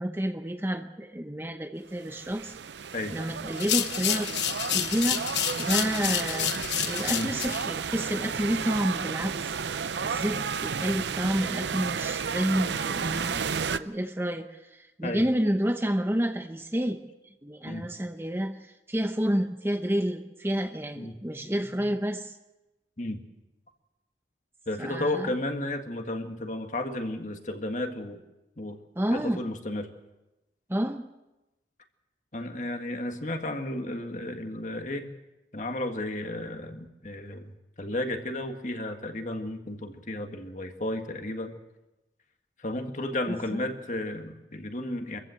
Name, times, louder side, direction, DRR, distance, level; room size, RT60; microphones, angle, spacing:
voice 1, 0.0-2.5 3.1-4.3 4.7-5.3 5.6-9.5 10.0-17.0 17.4-22.4 24.8-25.3 29.0-29.4 30.7-31.1 43.3-43.6, equal, 15° right, 7 dB, 0.8 m, -30 dB
sound 1, 1.9-13.8, right 6 dB, 80° right, 0.6 m, -32 dB
sound 2, 3.5-7.6, left 11 dB, 85° left, 1.2 m, -29 dB
voice 2, 21.0-21.5 23.0-23.2 24.7-28.2 28.6-28.8 29.1-29.9 32.3-35.1 35.5-37.5 37.8-41.5 42.6-45.2, left 1 dB, 45° left, 5 dB, 1.8 m, -33 dB
24.0 x 15.0 x 7.8 m, 1.0 s
head